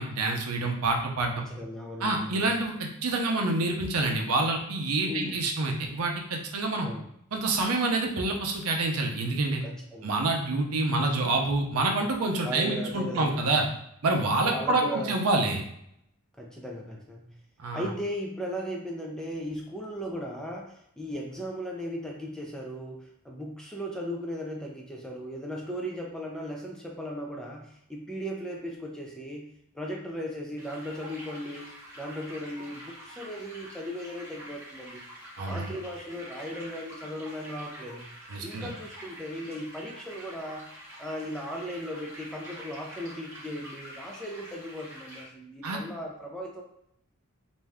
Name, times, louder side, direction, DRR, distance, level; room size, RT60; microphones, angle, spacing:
voice 1, 0.0-1.4 2.0-6.9 7.3-9.6 10.0-13.6 14.0-15.6 17.6-17.9 35.4-35.7 38.3-38.7 45.6-45.8, right 2 dB, 80° right, 2 dB, 0.5 m, -27 dB
voice 2, 1.4-2.5 5.1-5.3 6.8-7.0 9.6-10.1 11.2-11.3 12.4-13.4 14.4-15.1 16.4-17.4 17.7-29.5 29.7-35.0 35.5-38.1 38.4-40.7 41.0-46.6, equal, 5° left, -1 dB, 0.3 m, -37 dB
sound 1, 30.6-45.3, equal, 10° right, 0.7 m, -46 dB
2.6 x 2.2 x 3.3 m, 0.75 s
head